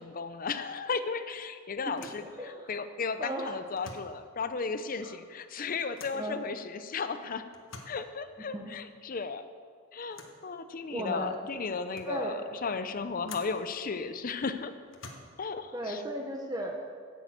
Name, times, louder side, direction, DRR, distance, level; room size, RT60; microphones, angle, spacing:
voice 1, 0.0-7.4 7.9-9.5 9.9-14.7 15.4-16.0, left 4 dB, 45° left, 10 dB, 0.6 m, -35 dB
sound 1, 0.7-0.9 1.2-1.3 1.9-2.3 3.7-4.2 6.0-6.3 7.5-8.1 10.1-10.4 11.2-11.3 11.7-12.2 13.2-13.7 14.9-15.5, left 4 dB, 80° left, 1.3 m, -48 dB
voice 2, 2.3-2.7 3.2-3.5 5.0-5.2 6.1-6.4 8.4-8.8 10.9-11.4 12.0-12.4 15.7-16.9, right 1 dB, 20° right, 1 dB, 0.9 m, -36 dB
10.5 x 7.0 x 8.0 m, 2.1 s
head